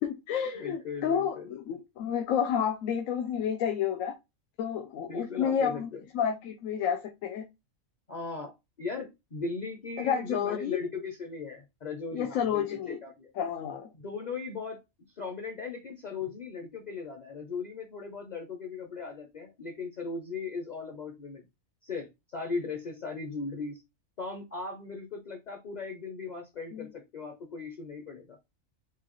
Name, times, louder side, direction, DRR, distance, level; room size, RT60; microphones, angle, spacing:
voice 1, 0.0-4.1 4.6-5.9 6.1-7.5 10.0-10.8 12.1-13.0 13.4-13.9 26.7-26.9, left 8 dB, 90° left, 1.0 m, -30 dB
voice 2, 0.6-1.5 5.1-6.0 8.1-13.3 13.9-14.8 15.2-21.5 21.8-23.8 24.2-28.4, left 4 dB, 45° left, 0.6 m, -38 dB
4.8 x 2.3 x 3.0 m
omnidirectional pair, 1.3 m